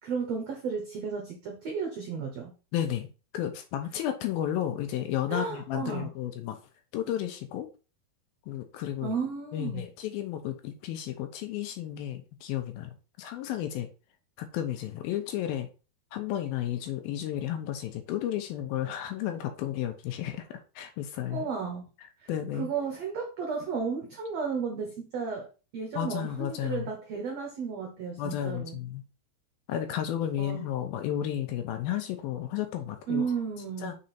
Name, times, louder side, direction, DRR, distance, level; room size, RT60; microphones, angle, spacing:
voice 1, 0.0-2.5 5.3-6.1 9.0-9.9 21.3-21.9 22.2-25.5 25.7-28.8 30.4-30.6 33.1-33.9, right 5 dB, 85° right, 2 dB, 1.4 m, -33 dB
voice 2, 2.7-6.6 6.9-7.7 8.5-9.1 9.5-13.9 14.4-15.7 16.1-21.5 22.3-22.7 26.0-26.9 28.2-29.0 29.7-33.3 33.8-34.0, left 11 dB, 80° left, 7 dB, 2.3 m, -33 dB
6.3 x 3.9 x 4.2 m, 0.33 s
omnidirectional pair, 4.6 m